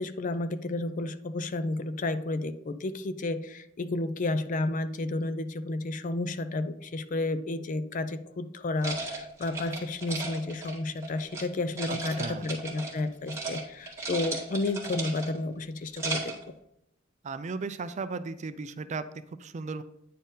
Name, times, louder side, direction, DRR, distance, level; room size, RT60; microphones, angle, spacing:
voice 1, 0.0-16.3, left 2 dB, 40° left, 12 dB, 0.4 m, -31 dB
sound 1, 8.8-11.4 11.8-13.0 13.3-13.6 13.9-15.4 15.8-16.4, right 3 dB, 15° right, 1.7 m, -35 dB
voice 2, 11.9-12.5 17.2-19.8, right 4 dB, 35° right, 12 dB, 0.4 m, -36 dB
9.3 x 4.3 x 3.8 m, 0.79 s
head